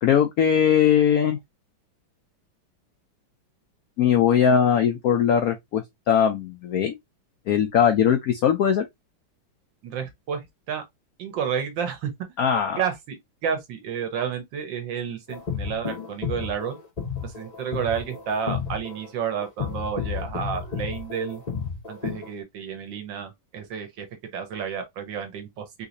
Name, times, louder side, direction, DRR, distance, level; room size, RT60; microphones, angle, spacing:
voice 1, 0.0-1.4 4.0-6.9 7.5-8.9 12.4-12.8, left 8 dB, 85° left, 0.7 m, -20 dB
voice 2, 9.8-10.9 11.2-12.1 12.8-13.2 13.4-16.8 17.2-21.4 21.9-24.1 24.3-25.9, right 7 dB, 70° right, 1.6 m, -31 dB
sound 1, 15.3-22.3, left 6 dB, 50° left, 0.4 m, -32 dB
3.7 x 2.9 x 2.5 m
omnidirectional pair, 2.1 m